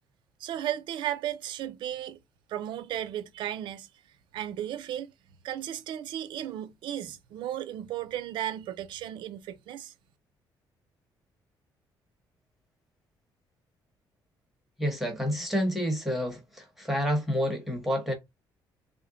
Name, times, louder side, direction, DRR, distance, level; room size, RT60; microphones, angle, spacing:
voice 1, 0.4-2.2 2.5-3.9 4.3-5.1 5.4-9.9, right 11 dB, 80° right, 0.5 m, -35 dB
voice 2, 14.8-18.1, equal, ahead, 0.9 m, -29 dB
3.7 x 2.1 x 3.7 m
cardioid pair, 165°, 8 cm